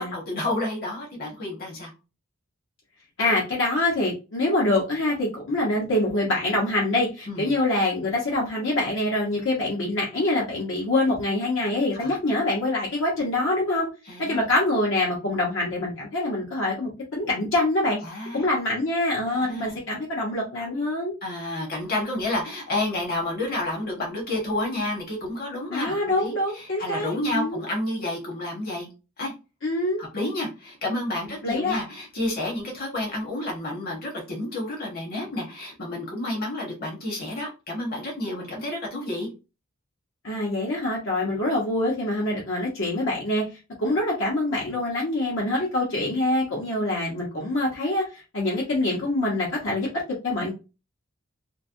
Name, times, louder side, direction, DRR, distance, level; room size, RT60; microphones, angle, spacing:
voice 1, 0.1-1.9 7.3-7.5 11.9-12.1 14.1-14.5 18.0-18.5 19.3-19.8 21.2-28.9 29.2-29.3 30.0-39.3, left 1 dB, 50° left, -1 dB, 1.2 m, -30 dB
voice 2, 3.2-13.9 14.2-18.0 18.3-21.1 25.7-27.6 29.6-30.0 31.4-31.8 40.2-43.4 43.8-49.9 50.2-50.5, left 1 dB, 65° left, -4 dB, 0.9 m, -25 dB
3.2 x 2.1 x 2.6 m, 0.29 s
head